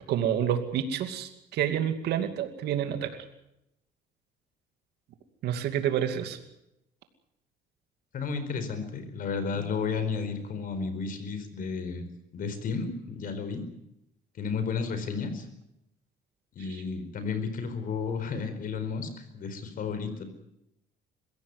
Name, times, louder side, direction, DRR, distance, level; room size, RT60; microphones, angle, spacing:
voice 1, 0.1-3.1 5.4-6.4, right 9 dB, 75° right, 7 dB, 2.5 m, -28 dB
voice 2, 8.1-12.0 12.3-13.6 14.4-15.5 16.5-20.2, left 5 dB, 55° left, 10 dB, 4.5 m, -32 dB
22.0 x 16.5 x 9.6 m, 0.84 s
cardioid pair, 110°, 17 cm